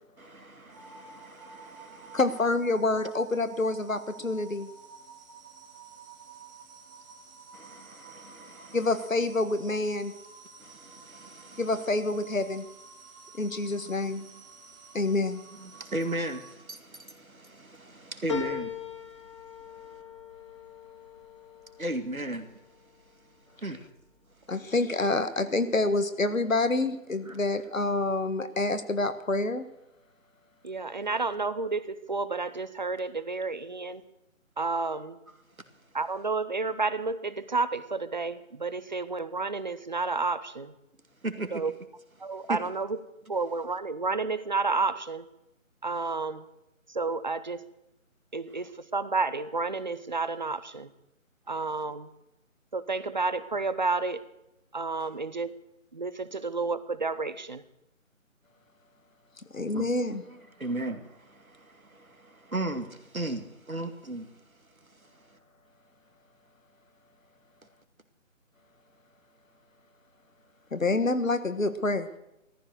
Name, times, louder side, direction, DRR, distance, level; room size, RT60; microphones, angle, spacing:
voice 1, 0.2-2.2 7.5-8.8 10.6-11.6 13.7-14.0 15.5-18.8 21.8-22.5 23.6-23.9 27.3-27.4 35.3-35.4 41.2-41.6 42.5-42.6 48.5-48.7 51.5-51.9 55.0-55.1 59.7-64.4 64.8-65.0, right 1 dB, 90° right, 7 dB, 2.3 m, -37 dB
sound 1, 0.7-16.5, right 5 dB, 15° right, 2.1 m, -51 dB
voice 2, 2.1-4.7 8.7-10.1 11.6-12.7 13.3-14.2 14.9-15.4 24.5-29.7 59.5-60.2 70.7-72.1, left 2 dB, 70° left, 10 dB, 1.8 m, -27 dB
sound 2, 18.3-23.0 23.5-24.2 24.6-24.7, left 6 dB, 20° left, 1.6 m, -40 dB
voice 3, 30.6-34.0 34.6-35.2 35.9-40.7 41.5-41.7 42.2-42.9 43.3-45.2 45.8-46.4 46.9-47.6 48.3-50.9 51.5-52.1 52.7-54.2 54.7-55.5 55.9-57.6, right 3 dB, 35° right, 14 dB, 0.8 m, -30 dB
15.0 x 14.0 x 6.6 m, 0.86 s
figure-of-eight pair, 155°, 41 cm